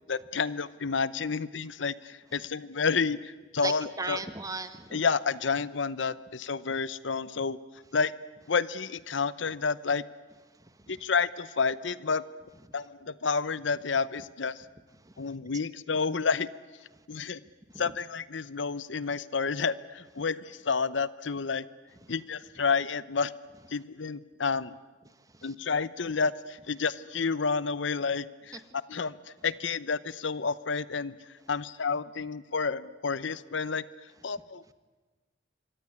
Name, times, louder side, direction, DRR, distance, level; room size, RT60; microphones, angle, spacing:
voice 1, 0.1-4.2 4.9-7.6 7.9-8.1 8.5-10.0 10.9-12.2 12.7-14.6 15.2-16.5 17.1-17.4 17.8-21.6 22.1-23.3 23.7-24.8 25.4-28.6 28.9-31.2 31.5-33.8 34.2-34.7, left 5 dB, 85° left, 17 dB, 0.8 m, -30 dB
voice 2, 3.6-5.0 10.6-11.0 15.0-15.1 17.7-17.8 25.3-25.5, right 3 dB, 20° right, 10 dB, 1.6 m, -37 dB
25.5 x 23.5 x 9.7 m, 1.3 s
head